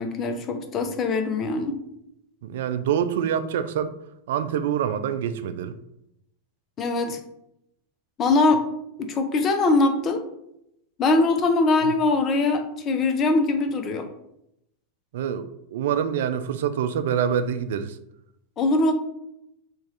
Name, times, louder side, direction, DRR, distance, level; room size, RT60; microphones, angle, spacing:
voice 1, 0.0-1.8 6.8-7.2 8.2-8.6 9.0-10.2 11.0-14.1 18.6-18.9, left 3 dB, 35° left, 6 dB, 0.6 m, -22 dB
voice 2, 2.4-4.0 4.3-5.8 11.8-11.9 15.1-18.0, right 8 dB, 75° right, 11 dB, 0.3 m, -26 dB
3.0 x 2.4 x 4.3 m, 0.80 s
hypercardioid pair, 110°, 0 cm